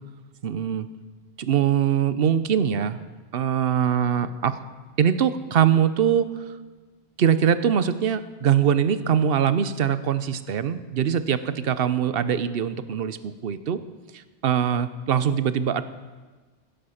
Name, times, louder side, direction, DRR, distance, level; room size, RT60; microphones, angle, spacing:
voice 1, 0.4-0.9 1.4-3.0 3.3-4.6 5.0-6.3 7.2-13.8 14.4-15.8, right 8 dB, 60° right, 13 dB, 0.9 m, -22 dB
16.5 x 10.5 x 5.8 m, 1.3 s
omnidirectional pair, 1.2 m